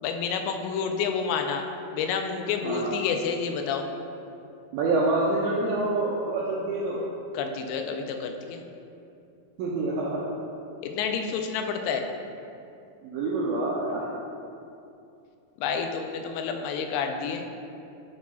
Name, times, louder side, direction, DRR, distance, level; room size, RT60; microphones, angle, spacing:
voice 1, 0.0-1.6 1.9-3.9 7.3-8.6 10.8-12.1 15.6-17.5, left 6 dB, 90° left, 4 dB, 2.7 m, -29 dB
voice 2, 2.6-2.9 4.7-7.0 9.6-10.3 13.0-14.0, right 2 dB, 85° right, -4 dB, 2.0 m, -26 dB
9.3 x 6.2 x 2.3 m, 2.6 s
omnidirectional pair, 4.7 m